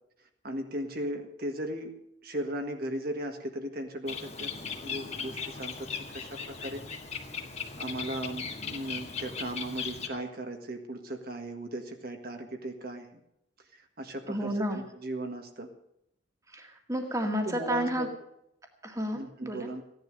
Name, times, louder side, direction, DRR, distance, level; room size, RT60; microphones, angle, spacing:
voice 1, 0.4-1.9 2.2-4.5 4.8-6.8 7.8-13.2 13.7-15.7 17.4-18.1 19.1-19.8, right 1 dB, 50° right, 4 dB, 1.7 m, -37 dB
Bird, 4.1-10.1, left 6 dB, 35° left, 1.7 m, -38 dB
voice 2, 14.3-14.8 16.5-18.1 18.8-19.7, equal, 15° right, 4 dB, 1.9 m, -31 dB
16.0 x 11.0 x 6.4 m, 0.77 s
head